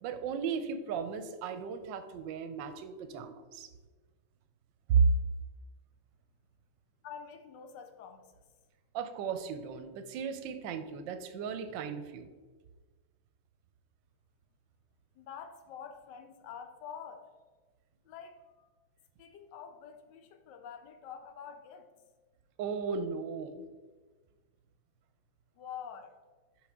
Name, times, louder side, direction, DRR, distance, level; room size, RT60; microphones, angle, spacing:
voice 1, 0.0-3.7 4.9-5.1 8.9-12.3 22.6-23.7, right 6 dB, 75° right, 9 dB, 1.2 m, -34 dB
voice 2, 7.0-8.4 15.1-17.3 18.0-18.7 19.2-21.9 25.6-26.1, left 7 dB, 70° left, 7 dB, 1.2 m, -47 dB
6.2 x 4.8 x 3.6 m, 1.3 s
omnidirectional pair, 2.2 m